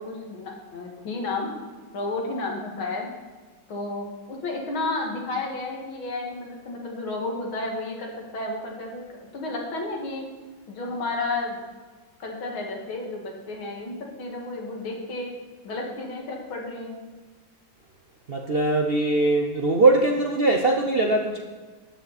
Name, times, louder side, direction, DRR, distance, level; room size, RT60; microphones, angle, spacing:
voice 1, 0.0-1.5 1.9-3.1 3.7-10.2 10.7-11.6 12.2-15.3 15.6-17.0, left 2 dB, 85° left, 0 dB, 2.9 m, -32 dB
voice 2, 18.3-21.4, right 2 dB, 55° right, 2 dB, 0.6 m, -21 dB
13.5 x 9.9 x 4.2 m, 1.4 s
omnidirectional pair, 2.2 m